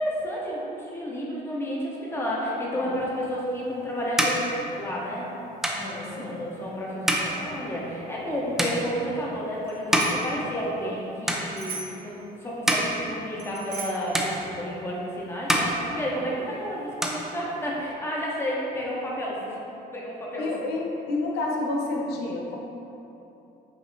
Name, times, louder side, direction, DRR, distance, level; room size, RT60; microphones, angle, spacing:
voice 1, 0.0-5.3 5.8-19.6 19.9-20.5, equal, 15° left, -5 dB, 0.8 m, -31 dB
sound 1, 3.3-11.0 11.2-12.0 12.4-13.9 14.1-15.0 15.3-16.6 16.8-17.9, equal, ahead, 0.4 m, -29 dB
voice 2, 5.8-6.5 20.4-22.6, left 2 dB, 75° left, -1 dB, 0.7 m, -30 dB
Bicycle bell, 9.6-10.3 11.5-12.1 13.4-14.1, right 4 dB, 75° right, 0.7 m, -38 dB
5.0 x 2.7 x 2.7 m, 2.9 s
cardioid pair, 110°, 17 cm